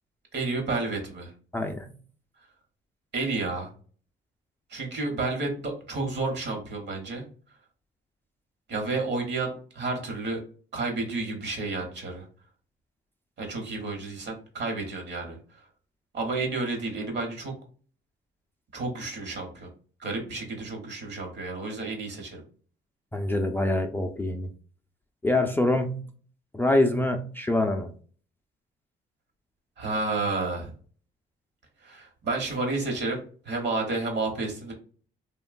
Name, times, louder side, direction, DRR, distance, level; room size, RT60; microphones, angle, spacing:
voice 1, 0.3-1.3 3.1-3.7 4.7-7.2 8.7-10.4 10.7-12.2 13.4-15.6 16.1-17.6 18.7-19.7 20.0-22.4 29.8-30.7 31.8-34.7, right 3 dB, 65° right, 2 dB, 1.0 m, -31 dB
voice 2, 1.5-1.9 23.1-24.5 25.2-26.0 26.5-27.9, left 1 dB, 10° left, 3 dB, 0.3 m, -25 dB
2.9 x 2.2 x 2.4 m, 0.43 s
cardioid pair, 90°, 20 cm